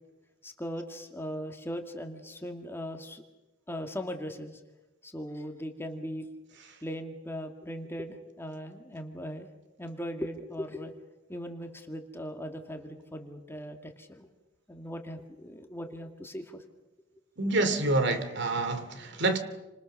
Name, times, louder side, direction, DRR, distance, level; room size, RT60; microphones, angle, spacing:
voice 1, 0.4-3.2 3.7-4.6 5.0-6.3 6.8-9.5 9.8-10.9 11.3-14.3 14.7-16.6, equal, 10° left, 4 dB, 2.2 m, -39 dB
voice 2, 17.4-19.4, right 2 dB, 55° right, 9 dB, 2.6 m, -27 dB
29.5 x 26.0 x 6.7 m, 1.0 s
head